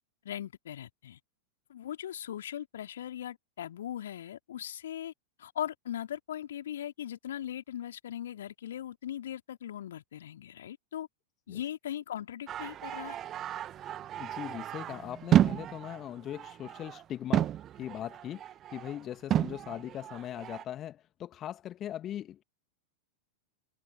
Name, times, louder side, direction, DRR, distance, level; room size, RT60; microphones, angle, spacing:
voice 1, 0.2-1.2 1.7-5.1 5.4-11.1 11.5-13.2, left 11 dB, 60° left, 3.1 m, -39 dB
sound 1, 12.5-17.0 17.3-19.1 19.3-20.6, right 11 dB, 30° right, 1.5 m, -31 dB
voice 2, 14.2-17.5 17.8-18.4 18.7-22.4, left 11 dB, 30° left, 2.0 m, -40 dB
figure-of-eight pair, 90°, 0 cm